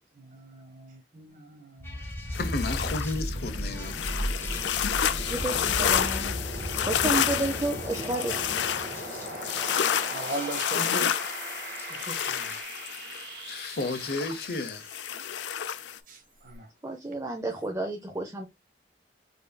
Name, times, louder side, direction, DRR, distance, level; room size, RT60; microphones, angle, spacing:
voice 1, 0.1-2.1 4.5-4.6 5.1-5.6 8.8-9.0 9.3-9.4 10.1-11.1 11.9-12.5 16.1-16.7, right 2 dB, 50° right, 0.9 m, -40 dB
sound 1, 1.8-12.6, left 2 dB, 15° left, 1.0 m, -46 dB
sound 2, 1.8-15.6, equal, 75° right, 1.6 m, -36 dB
sound 3, 2.3-16.0, left 9 dB, 85° left, 0.4 m, -30 dB
voice 2, 2.4-4.0 4.4-4.8 5.1-5.6 13.5-14.9, left 2 dB, 60° left, 0.7 m, -33 dB
voice 3, 5.3-6.4 6.9-8.4 9.1-9.3 12.2-12.3 16.8-18.5, right 2 dB, 15° right, 0.5 m, -31 dB
5.3 x 2.6 x 2.2 m
head